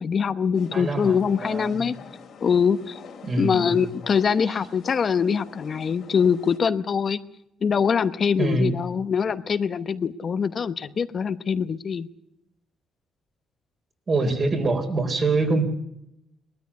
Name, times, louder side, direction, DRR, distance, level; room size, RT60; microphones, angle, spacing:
voice 1, 0.0-1.9 2.4-3.0 3.4-7.2 7.6-12.1, left 6 dB, 50° left, 11 dB, 0.9 m, -23 dB
sound 1, 0.5-6.6, left 6 dB, 65° left, 2.3 m, -45 dB
voice 2, 0.7-1.8 3.2-3.8 8.4-8.7 14.1-15.6, right 3 dB, 40° right, 5 dB, 3.9 m, -24 dB
20.0 x 13.5 x 9.7 m, 0.82 s
cardioid pair, 90°, 0 cm